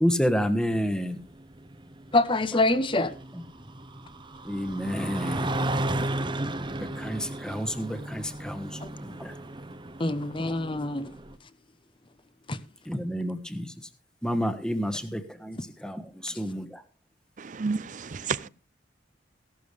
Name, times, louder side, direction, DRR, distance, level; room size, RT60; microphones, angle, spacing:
voice 1, 0.0-1.2 2.5-2.6 4.4-5.5 6.7-9.3 12.8-13.7 14.2-16.8, equal, 5° left, 1.3 m, -30 dB
sound 1, 0.8-11.3, right 1 dB, 25° right, 0.9 m, -34 dB
voice 2, 2.1-3.1 8.8-8.9 10.0-11.2 12.5-12.6 16.3-16.4, left 2 dB, 30° left, 1.0 m, -25 dB
voice 3, 17.4-18.5, right 5 dB, 45° right, 0.5 m, -31 dB
16.0 x 12.0 x 3.4 m
head